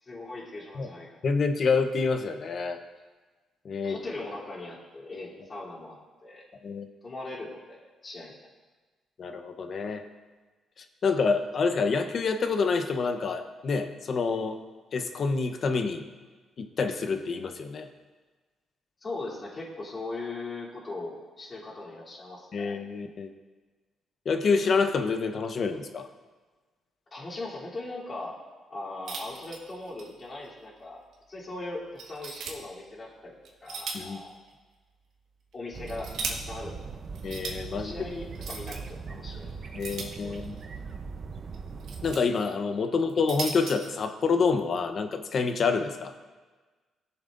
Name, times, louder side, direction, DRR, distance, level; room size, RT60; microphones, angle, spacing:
voice 1, 0.0-1.3 3.8-6.0 6.2-6.5 7.0-8.5 19.0-22.8 27.1-28.4 28.7-31.0 31.3-33.3 33.6-34.4 35.5-37.0 37.7-39.5 40.2-40.4, left 2 dB, 35° left, -9 dB, 3.2 m, -39 dB
voice 2, 1.2-2.8 3.6-4.0 6.6-6.9 9.2-10.0 11.0-14.6 14.9-16.0 16.6-17.9 22.5-23.3 24.2-26.1 33.9-34.2 37.2-38.1 39.7-40.6 42.0-46.1, left 4 dB, 50° left, 7 dB, 0.9 m, -27 dB
sound 1, 29.1-30.1 30.4-30.5 31.1-31.2 32.0-32.5 33.4-34.2 34.5-34.6 35.5-36.3 37.1-37.6 38.3-38.8 39.8-40.6 41.5-42.2 43.0-43.9, right 4 dB, 75° right, 1.6 m, -37 dB
sound 2, 35.7-42.1, right 5 dB, 45° right, 0.7 m, -40 dB
19.0 x 7.1 x 2.6 m, 1.3 s
cardioid pair, 90°, 0 cm